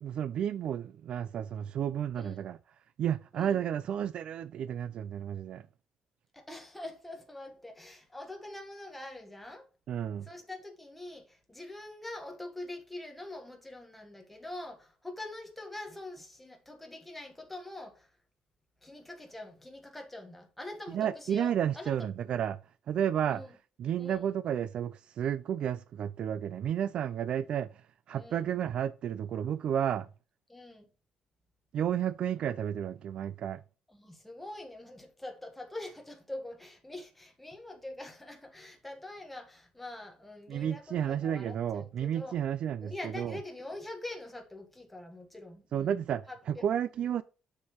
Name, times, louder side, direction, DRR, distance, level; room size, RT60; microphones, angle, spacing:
voice 1, 0.0-2.6 3.0-5.6 9.9-10.3 20.9-22.6 22.9-23.4 23.8-30.1 31.7-33.6 40.5-43.4 45.7-47.2, right 9 dB, 50° right, 0.3 m, -32 dB
voice 2, 6.3-9.7 10.2-18.1 18.8-21.9 23.3-23.5 24.0-24.2 28.2-28.5 30.5-30.9 33.9-42.4 42.8-46.6, left 1 dB, 5° left, 1.4 m, -44 dB
7.0 x 6.7 x 3.0 m
cardioid pair, 170°, 2 cm